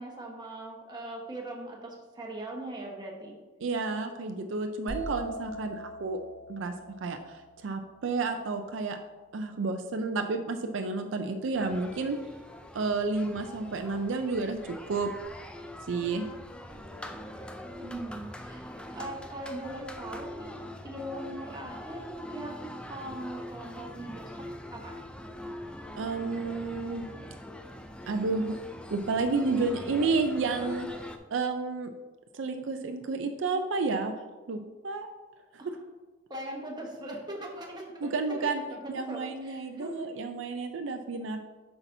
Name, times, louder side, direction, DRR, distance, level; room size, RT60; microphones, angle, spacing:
voice 1, 0.0-3.3 17.1-17.2 17.8-18.6 18.9-20.6 20.8-24.4 24.7-25.0 35.6-35.7 36.3-38.8 39.1-40.1, right 1 dB, 20° right, -1 dB, 1.1 m, -40 dB
voice 2, 3.6-6.2 6.5-6.7 7.0-9.0 9.3-12.2 12.7-14.6 14.9-15.1 15.9-16.3 26.0-27.1 28.1-28.6 28.9-31.9 32.3-34.1 34.5-35.1 38.0-38.6 38.9-41.4, right 3 dB, 70° right, 6 dB, 0.4 m, -31 dB
sound 1, 4.9-8.7, equal, 80° left, 0.9 m, -42 dB
sound 2, 11.5-31.2, left 1 dB, 5° left, 0.3 m, -43 dB
8.1 x 5.7 x 2.7 m, 1.3 s
head